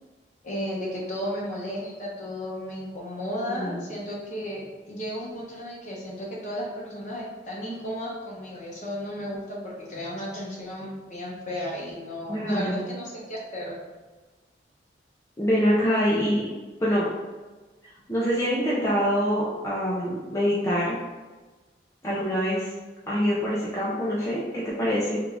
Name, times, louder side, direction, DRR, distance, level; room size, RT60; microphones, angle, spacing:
voice 1, 0.4-13.7, equal, 40° left, -4 dB, 0.9 m, -34 dB
voice 2, 3.5-3.8 12.3-12.9 15.4-16.4 16.8-17.1 18.1-21.0 22.0-22.7 23.1-25.2, equal, 15° left, -8 dB, 0.5 m, -25 dB
3.7 x 2.3 x 3.3 m, 1.3 s
head